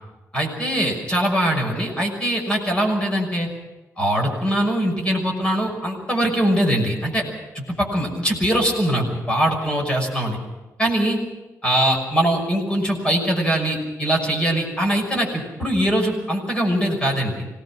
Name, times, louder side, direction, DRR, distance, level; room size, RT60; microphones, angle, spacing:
voice 1, 0.3-3.5 4.0-7.2 7.5-10.4 10.8-11.2 11.6-17.5, right 1 dB, 15° left, 1 dB, 6.0 m, -22 dB
25.5 x 18.5 x 6.1 m, 1.1 s
wide cardioid pair, 140°, 6 cm